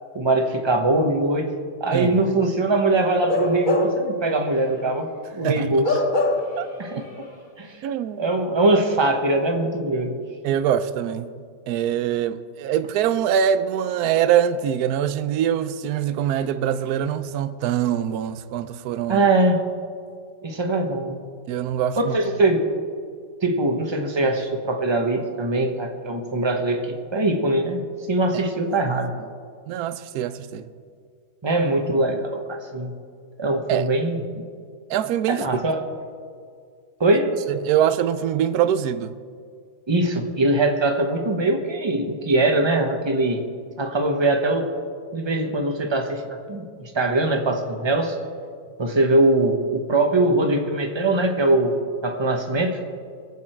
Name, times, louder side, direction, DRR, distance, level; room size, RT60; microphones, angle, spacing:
voice 1, 0.1-1.5 1.8-5.1 5.3-6.0 6.8-7.3 7.6-7.8 8.2-10.2 19.1-19.6 20.4-21.2 22.0-22.7 23.4-29.1 31.4-32.9 33.4-34.2 35.3-35.8 37.0-37.3 39.9-43.5 43.8-44.7 45.1-48.1 48.8-52.8, right 2 dB, 20° right, 1.1 m, -22 dB
Bark / Livestock farm animals working animals, 3.2-4.1 4.5-4.7 5.8-6.7 7.0-7.1, left 2 dB, 30° left, 1.4 m, -23 dB
voice 2, 7.8-8.2 10.4-11.3 11.7-19.3 21.5-22.2 28.9-29.0 29.7-30.7 33.7-33.9 34.9-35.4 37.5-39.1, right 9 dB, 70° right, 1.1 m, -23 dB
22.5 x 8.6 x 4.5 m
omnidirectional pair, 1.8 m